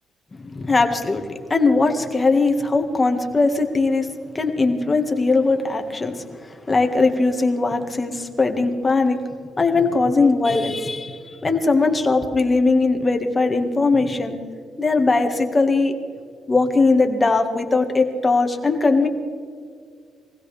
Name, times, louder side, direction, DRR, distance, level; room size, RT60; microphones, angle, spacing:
voice 1, 0.3-1.2 1.5-4.1 4.3-6.2 6.7-9.2 9.6-14.4 14.8-15.9 16.5-19.1, left 3 dB, 25° left, 5 dB, 1.7 m, -19 dB
23.5 x 16.0 x 3.4 m, 2.1 s
cardioid pair, 90°, 0 cm